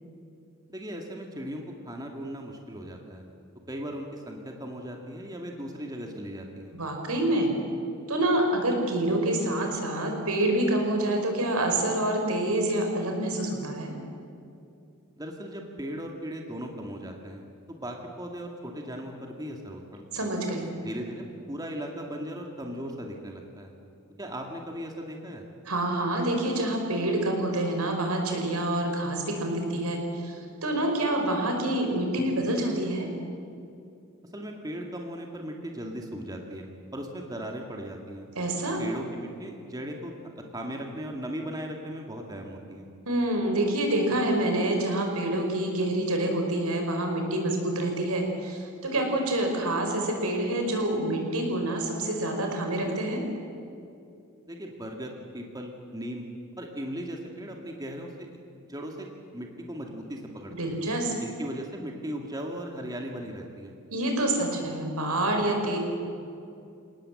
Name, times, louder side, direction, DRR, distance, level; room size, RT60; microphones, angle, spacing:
voice 1, 0.7-3.2 3.7-6.7 15.2-17.4 17.7-20.3 20.8-23.7 24.2-25.4 34.3-36.7 36.9-38.3 38.8-40.1 40.5-42.9 54.5-56.2 56.6-58.1 58.7-60.8 61.2-63.7, equal, 15° right, 2 dB, 2.1 m, -37 dB
voice 2, 6.7-7.5 8.1-13.9 20.1-20.7 25.6-33.1 38.3-38.8 43.0-53.2 60.6-61.1 63.9-65.8, right 1 dB, 85° right, 3 dB, 4.8 m, -27 dB
28.5 x 18.5 x 7.7 m, 2.6 s
head